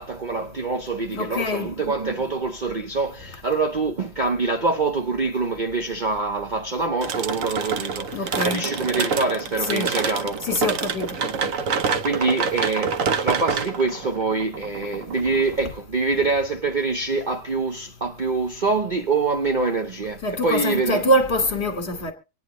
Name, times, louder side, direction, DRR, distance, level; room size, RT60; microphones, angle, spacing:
voice 1, 0.0-10.5 11.0-21.1 21.7-22.1, right 3 dB, 80° right, 0.4 m, -25 dB
voice 2, 1.1-1.7 8.1-8.6 9.7-9.9 10.5-11.1 20.2-22.1, left 1 dB, 35° left, 1.9 m, -24 dB
sound 1, 7.0-15.7, right 5 dB, 55° right, 1.1 m, -27 dB
25.0 x 9.4 x 3.1 m
omnidirectional pair, 2.0 m